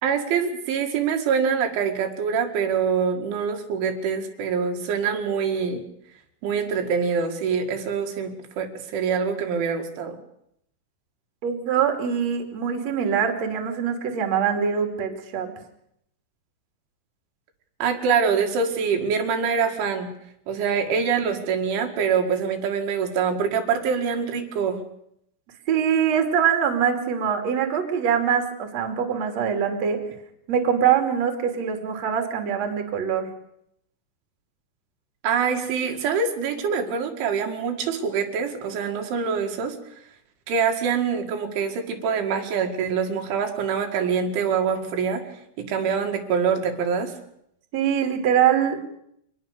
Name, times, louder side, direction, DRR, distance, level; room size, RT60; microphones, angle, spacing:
voice 1, 0.0-5.8 6.4-10.2 17.8-20.1 20.5-24.8 35.2-39.8 40.5-45.2 45.6-47.1, right 6 dB, 80° right, 3 dB, 4.5 m, -25 dB
voice 2, 11.4-15.5 25.7-30.0 30.5-33.3 47.7-48.8, right 8 dB, 40° right, 4 dB, 3.4 m, -23 dB
25.5 x 20.0 x 6.8 m, 0.74 s
omnidirectional pair, 5.4 m